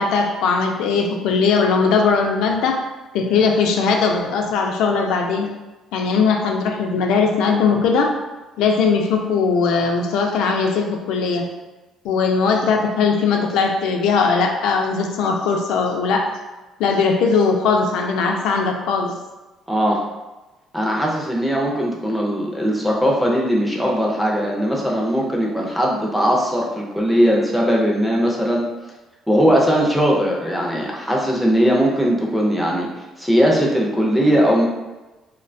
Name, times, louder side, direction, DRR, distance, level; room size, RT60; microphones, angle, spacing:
voice 1, 0.0-2.8 3.1-5.5 5.9-8.2 8.6-11.5 12.0-16.3 16.8-19.1, left 5 dB, 80° left, 2 dB, 0.3 m, -19 dB
voice 2, 19.7-20.0 20.7-28.6 29.3-34.7, equal, ahead, -3 dB, 0.3 m, -19 dB
2.5 x 2.1 x 2.5 m, 1.1 s
cardioid pair, 165°, 0 cm